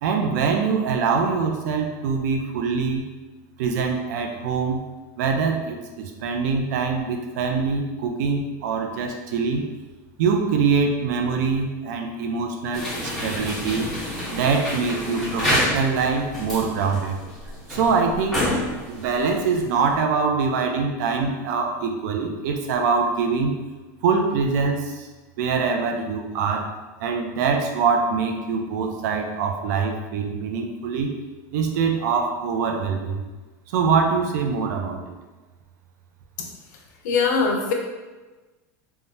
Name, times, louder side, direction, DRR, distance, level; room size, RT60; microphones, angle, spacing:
voice 1, 0.0-3.1 3.6-4.8 5.2-9.7 10.2-13.9 14.3-17.2 17.7-18.5 18.9-23.6 24.0-25.1 25.4-26.7 27.0-31.1 31.5-33.2 33.7-35.0, right 5 dB, 75° right, 3 dB, 0.5 m, -24 dB
sound 1, 12.7-19.9, left 1 dB, 5° left, 1.3 m, -28 dB
voice 2, 37.0-37.7, left 5 dB, 80° left, 1 dB, 0.7 m, -21 dB
3.5 x 2.3 x 2.7 m, 1.2 s
supercardioid pair, 140°, 9 cm